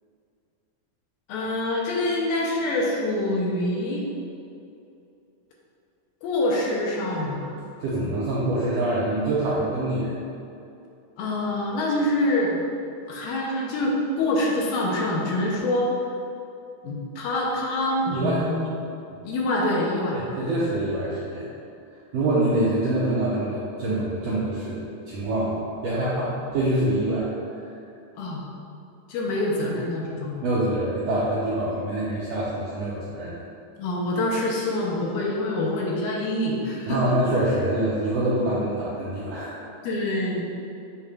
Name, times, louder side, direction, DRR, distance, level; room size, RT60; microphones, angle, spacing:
voice 1, 1.3-4.0 6.2-7.6 11.2-12.7 13.1-15.9 16.8-18.8 19.2-20.2 28.2-28.4 29.1-30.3 33.8-37.0 39.8-40.5, left 1 dB, 80° left, -3 dB, 2.0 m, -25 dB
voice 2, 7.8-10.1 18.1-18.5 19.1-19.3 20.1-21.5 22.1-25.6 25.8-27.3 30.4-33.4 36.9-39.5, right 1 dB, 85° right, -8 dB, 1.5 m, -25 dB
8.1 x 2.7 x 2.3 m, 2.6 s
omnidirectional pair, 3.6 m